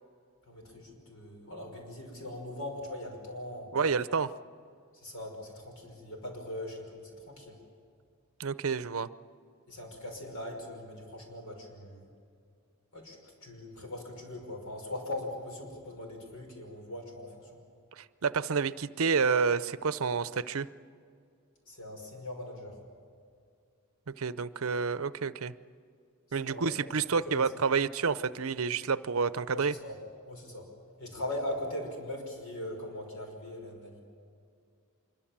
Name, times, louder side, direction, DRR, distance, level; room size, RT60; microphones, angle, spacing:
voice 1, 0.5-3.7 4.9-7.6 9.7-12.1 12.9-17.6 21.7-22.8 26.3-26.7 27.3-27.4 29.5-30.0 30.2-30.7 31.0-34.0, left 1 dB, 70° left, 2 dB, 5.8 m, -40 dB
voice 2, 3.7-4.3 8.4-9.1 18.0-20.7 24.1-25.5 26.3-29.7, right 5 dB, 70° right, 15 dB, 0.6 m, -29 dB
25.5 x 23.0 x 7.4 m, 2.3 s
head